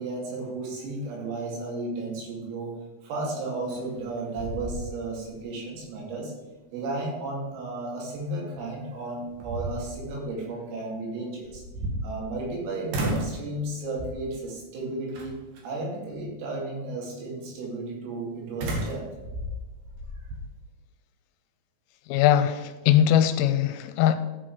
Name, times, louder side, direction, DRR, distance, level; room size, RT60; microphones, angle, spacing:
voice 1, 0.0-2.8 3.0-6.3 6.7-11.6 12.0-15.4 15.6-19.1, right 2 dB, 80° right, -2 dB, 5.1 m, -33 dB
sound 1, 3.7-4.1 4.4-5.4 5.8-5.9 8.5-8.6 9.2-10.1 11.4-12.6 12.9-13.4 14.0-14.4 15.1-15.6 18.6-20.4, right 1 dB, 65° right, 2.5 m, -33 dB
voice 2, 22.1-24.2, left 10 dB, 85° left, 10 dB, 3.1 m, -21 dB
14.0 x 6.0 x 4.8 m, 1.2 s
omnidirectional pair, 5.9 m